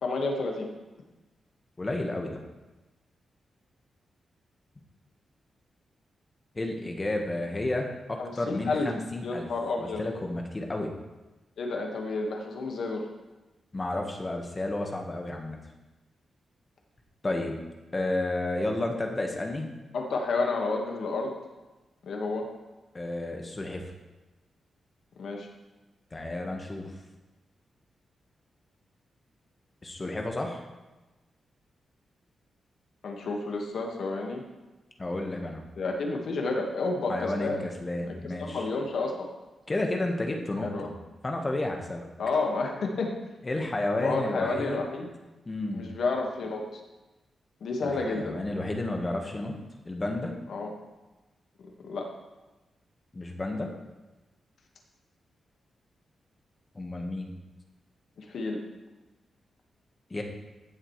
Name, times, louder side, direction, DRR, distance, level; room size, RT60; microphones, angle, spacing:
voice 1, 0.0-0.7 8.2-8.9 9.2-10.0 11.6-13.1 19.9-21.3 22.0-22.5 25.2-25.5 33.0-34.4 35.8-37.7 38.0-39.3 40.6-40.9 42.2-43.1 44.0-45.1 45.7-46.8 47.6-48.4 50.5-50.7 51.6-52.1 58.2-58.6, left 3 dB, 70° left, 1 dB, 1.7 m, -30 dB
voice 2, 1.8-2.4 6.5-9.5 9.8-10.9 13.7-15.6 17.2-17.6 17.9-19.7 22.9-23.9 26.1-26.9 29.8-30.6 35.0-35.7 37.1-38.7 39.7-40.9 41.2-42.1 43.4-44.8 45.4-45.8 47.8-49.5 49.8-50.3 53.1-53.7 56.7-57.3 60.1-60.2, left 2 dB, 25° left, 2 dB, 1.4 m, -31 dB
15.5 x 7.4 x 3.2 m, 1.1 s
wide cardioid pair, 110°, 0 cm